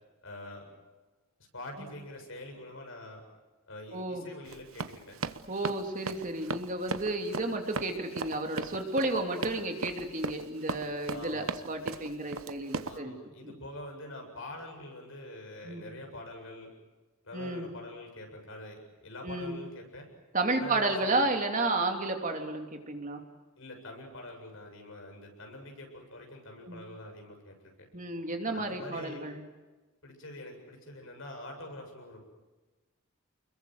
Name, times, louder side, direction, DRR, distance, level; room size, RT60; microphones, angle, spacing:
voice 1, 0.2-0.7 1.5-3.2 3.7-5.2 11.1-11.5 12.8-16.7 17.2-20.1 20.6-21.2 23.6-27.9 28.5-29.3 30.0-32.2, left 1 dB, 65° left, 3 dB, 7.8 m, -45 dB
voice 2, 3.9-4.3 5.5-13.1 15.6-15.9 17.3-17.7 19.2-19.6 20.3-23.2 26.7-26.8 27.9-29.4, right 2 dB, 35° right, 4 dB, 2.9 m, -32 dB
Run, 4.4-13.0, right 4 dB, 75° right, 1.0 m, -37 dB
29.5 x 22.0 x 8.0 m, 1.2 s
head